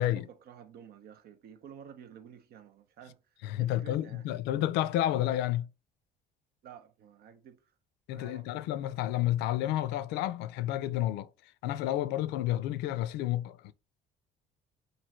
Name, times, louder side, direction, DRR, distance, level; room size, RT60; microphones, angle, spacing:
voice 1, 0.0-3.2 3.6-4.3 6.6-7.6 8.1-8.6, right 8 dB, 65° right, 0.7 m, -51 dB
voice 2, 3.4-5.7 8.1-11.3 11.6-13.7, left 13 dB, 90° left, 0.4 m, -30 dB
3.1 x 2.6 x 4.3 m
cardioid pair, 110°, 17 cm